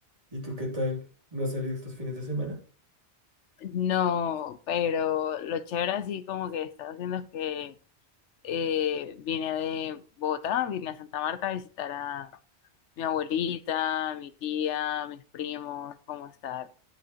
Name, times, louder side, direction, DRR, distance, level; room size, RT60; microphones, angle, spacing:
voice 1, 0.3-1.0 1.3-2.6, left 1 dB, 30° right, 3.0 m, -32 dB
voice 2, 3.6-7.7 8.4-12.3 13.0-16.7, left 9 dB, 90° left, 1.0 m, -30 dB
11.0 x 8.7 x 3.0 m
omnidirectional pair, 1.2 m